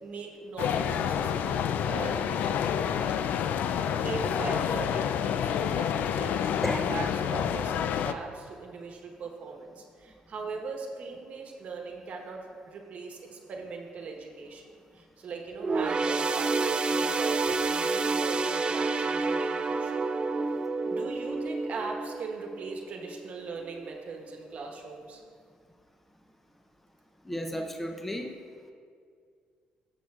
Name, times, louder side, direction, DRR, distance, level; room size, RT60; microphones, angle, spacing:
voice 1, 0.0-6.5 6.9-20.1 20.8-25.2, right 4 dB, 55° right, 2 dB, 1.1 m, -40 dB
sound 1, 0.6-8.1, left 8 dB, 75° left, 0.3 m, -28 dB
voice 2, 6.6-6.9 27.2-28.3, equal, 5° left, 3 dB, 0.6 m, -33 dB
sound 2, 15.6-23.3 23.7-23.9 24.8-24.9, right 3 dB, 35° right, 0.4 m, -29 dB
13.0 x 7.3 x 2.4 m, 2.2 s
cardioid pair, 95°, 3 cm